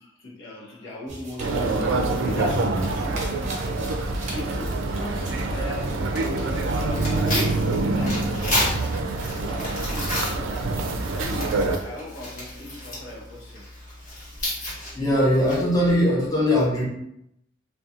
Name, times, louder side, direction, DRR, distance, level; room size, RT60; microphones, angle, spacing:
voice 1, 0.0-3.7 3.9-9.6 11.1-13.6 14.3-14.8, left 2 dB, 80° left, -5 dB, 0.9 m, -40 dB
sound 1, 1.1-7.2, right 2 dB, 40° right, 0.6 m, -41 dB
sound 2, 1.4-11.8, right 2 dB, 80° right, 0.4 m, -26 dB
Tearing, 5.2-15.9, left 1 dB, 45° left, 1.1 m, -33 dB
voice 2, 14.9-16.8, equal, 20° left, -5 dB, 0.6 m, -20 dB
2.7 x 2.3 x 2.4 m, 0.77 s
head